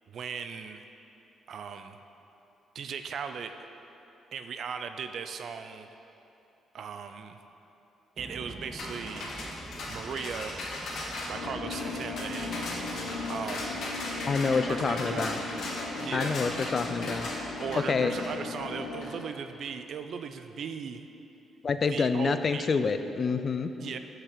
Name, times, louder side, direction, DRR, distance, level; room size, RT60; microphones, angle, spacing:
voice 1, 0.1-0.8 1.5-2.0 2.7-3.5 4.3-5.9 6.7-7.4 8.2-9.3 9.9-10.6 11.3-13.8 14.6-15.4 16.0-16.4 17.6-21.1 21.9-22.7 23.8-24.0, right 6 dB, 60° right, 8 dB, 0.5 m, -38 dB
sound 1, 8.2-19.8, right 1 dB, 15° right, 0.9 m, -49 dB
sound 2, 8.8-19.2, left 1 dB, 65° left, 1.7 m, -38 dB
sound 3, 11.3-19.0, left 3 dB, 85° left, 1.0 m, -37 dB
voice 2, 14.3-15.4 16.1-18.1 21.6-23.7, left 5 dB, 45° left, 10 dB, 0.4 m, -28 dB
6.8 x 5.8 x 6.6 m, 3.0 s
cardioid pair, 90°, 0 cm